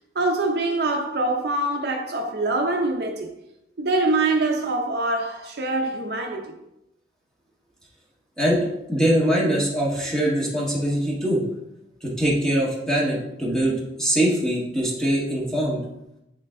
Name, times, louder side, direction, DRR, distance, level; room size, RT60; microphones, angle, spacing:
voice 1, 0.1-3.3 3.8-6.6, right 2 dB, 55° right, 0.6 m, -24 dB
voice 2, 8.9-11.4 12.0-15.8, right 1 dB, 5° left, 1.4 m, -22 dB
9.1 x 3.2 x 3.7 m
head